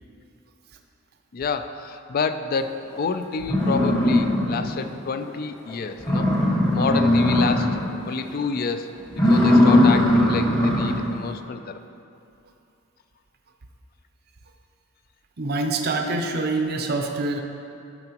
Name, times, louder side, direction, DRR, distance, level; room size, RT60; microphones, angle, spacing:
voice 1, 1.3-6.3 6.7-7.8 8.1-8.9 9.3-11.8, left 4 dB, 45° left, 9 dB, 0.4 m, -28 dB
sound 1, 3.0-3.1 3.4-4.8 5.2-5.3 5.7-5.8 6.0-7.9 8.3-8.6 9.1-11.1, left 1 dB, 20° left, 1.2 m, -19 dB
voice 2, 15.4-17.4, right 2 dB, 50° right, 3 dB, 0.6 m, -25 dB
13.0 x 5.8 x 2.9 m, 2.6 s
head